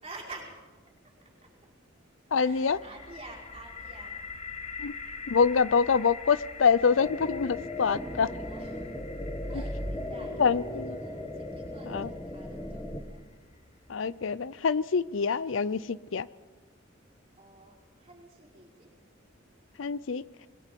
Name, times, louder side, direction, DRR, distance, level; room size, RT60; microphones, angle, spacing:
voice 1, 0.0-1.5 2.4-4.3 8.4-8.9 9.5-13.3 17.3-18.9, right 2 dB, 35° right, -2 dB, 5.1 m, -49 dB
voice 2, 2.3-2.8 4.8-4.9 5.3-8.3 10.4-11.0 11.8-12.1 13.9-16.3 19.8-20.2, left 5 dB, 75° left, 19 dB, 0.5 m, -25 dB
sound 1, 2.4-14.2, left 5 dB, 35° left, 1.2 m, -45 dB
sound 2, 7.0-13.0, left 1 dB, 15° left, 1.4 m, -37 dB
25.0 x 21.5 x 5.3 m, 1.3 s
head